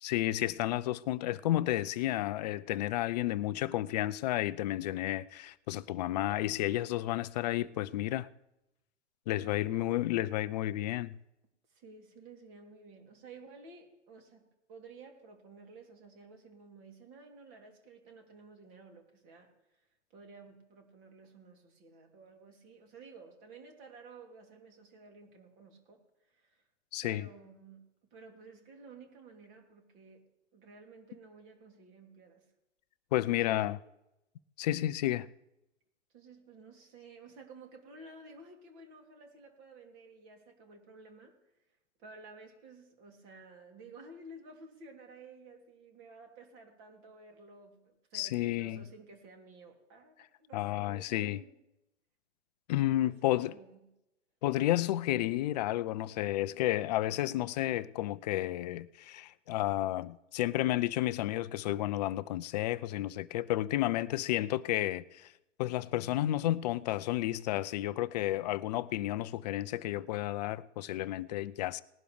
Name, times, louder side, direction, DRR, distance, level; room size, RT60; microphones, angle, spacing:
voice 1, 0.0-8.3 9.3-11.2 26.9-27.3 33.1-33.8 34.6-35.3 48.1-48.8 50.5-51.4 52.7-53.6 54.4-65.3 65.6-71.8, left 15 dB, 35° left, 0.5 m, -31 dB
voice 2, 9.3-10.0 11.7-19.8 20.1-26.6 27.0-27.8 28.1-30.2 30.5-32.5 33.3-33.8 36.1-41.4 42.0-51.5 53.0-53.9, right 3 dB, 35° right, 2.9 m, -53 dB
19.5 x 11.5 x 3.3 m
hypercardioid pair, 115°, 36 cm